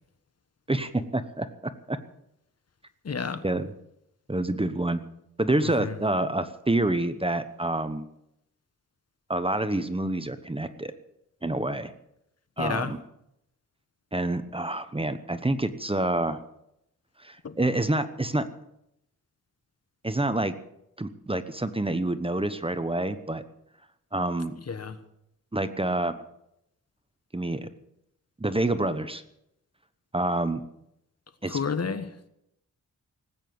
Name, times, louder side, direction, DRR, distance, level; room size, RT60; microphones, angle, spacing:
voice 1, 0.7-2.0 3.4-3.7 4.3-5.0 5.4-8.1 9.3-10.9 11.4-11.9 12.6-13.0 14.1-16.4 17.2-18.5 20.0-20.5 21.0-23.4 24.1-24.5 25.5-26.2 27.3-27.7 28.4-29.2 30.1-30.6 31.4-31.6, right 2 dB, 15° right, 11 dB, 1.0 m, -27 dB
voice 2, 3.0-3.4 5.8-5.9 12.6-12.9 17.4-17.5 24.7-25.0 31.5-32.1, left 5 dB, 45° left, 11 dB, 1.3 m, -30 dB
19.0 x 9.0 x 7.8 m, 0.79 s
cardioid pair, 85°, 34 cm